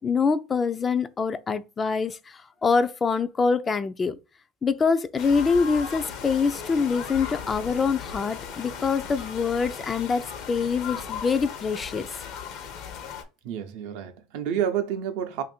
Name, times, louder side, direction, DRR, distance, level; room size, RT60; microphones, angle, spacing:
voice 1, 0.0-2.2 2.6-4.2 4.6-12.1, left 5 dB, 25° left, 0.3 m, -25 dB
sound 1, 5.2-13.2, left 7 dB, 60° left, 0.7 m, -37 dB
voice 2, 13.4-15.4, right 9 dB, 70° right, 0.6 m, -29 dB
2.6 x 2.5 x 4.1 m
supercardioid pair, 100°, 0 cm